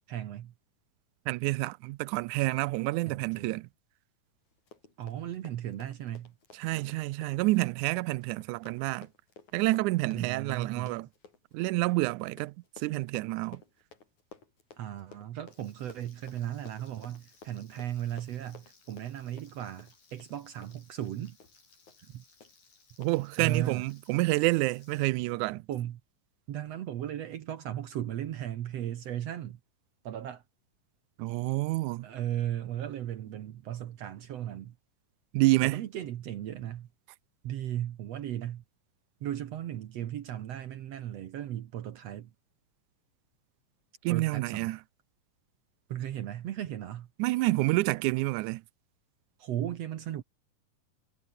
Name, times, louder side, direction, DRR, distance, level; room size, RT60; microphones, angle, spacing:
voice 1, 0.1-0.5 3.1-3.6 5.0-6.3 10.1-11.0 14.8-21.4 22.1-22.2 23.4-23.9 25.7-26.0 26.5-29.6 30.0-30.4 31.3-31.4 32.0-34.8 35.6-36.9 37.4-38.6 39.2-42.3 44.1-44.7 45.9-47.1 49.4-50.2, right 11 dB, 65° right, 1.8 m, -36 dB
voice 2, 1.3-3.7 6.6-9.1 9.5-11.1 11.5-12.5 12.8-13.6 23.0-25.6 31.2-32.1 35.3-35.8 44.0-44.8 47.2-48.6, right 20 dB, 80° right, 1.9 m, -28 dB
Run, 4.5-21.2 21.4-21.6 21.9-22.1 22.4-22.5 23.0-23.1, left 3 dB, 60° left, 6.4 m, -55 dB
Frying (food), 15.5-25.1, left 4 dB, 80° left, 9.3 m, -63 dB
omnidirectional pair, 3.9 m